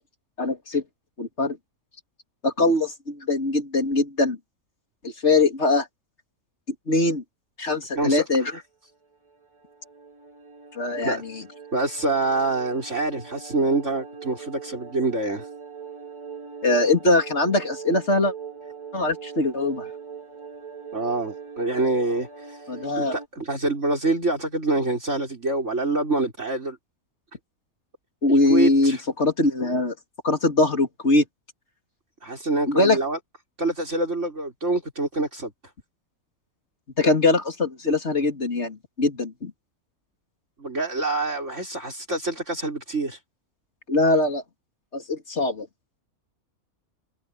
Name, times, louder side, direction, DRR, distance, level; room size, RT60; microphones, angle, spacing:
voice 1, 0.4-0.8 1.2-1.6 2.4-4.4 5.0-5.9 6.9-7.2 7.6-8.5 10.7-11.4 16.6-18.3 18.9-19.9 22.7-23.1 28.2-29.9 30.2-31.2 32.7-33.0 37.0-39.5 43.9-44.4 44.9-45.7, left 2 dB, 50° left, 3.6 m, -22 dB
sound 1, 9.1-23.3, right 6 dB, 20° right, 4.2 m, -41 dB
voice 2, 11.7-15.5 20.9-22.6 23.0-26.8 28.3-29.0 32.2-33.2 33.6-35.5 40.6-43.2, right 2 dB, 55° right, 5.9 m, -26 dB
omnidirectional pair, 1.5 m